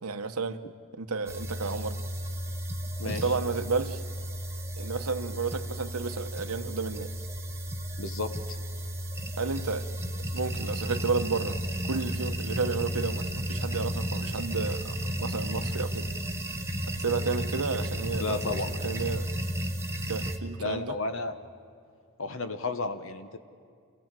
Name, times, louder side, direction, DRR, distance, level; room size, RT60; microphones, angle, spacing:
voice 1, 0.0-0.6 1.0-2.0 3.0-4.0 4.8-7.1 9.4-9.9 10.3-11.6 11.9-16.1 17.0-19.3 20.1-21.0, right 4 dB, 90° right, 9 dB, 1.0 m, -32 dB
sound 1, 1.3-20.4, equal, 10° right, 0.9 m, -33 dB
voice 2, 3.0-3.3 8.0-8.6 18.2-18.7 20.6-21.3 22.2-23.4, left 3 dB, 65° left, 9 dB, 1.2 m, -32 dB
28.0 x 16.0 x 7.6 m, 2.3 s
head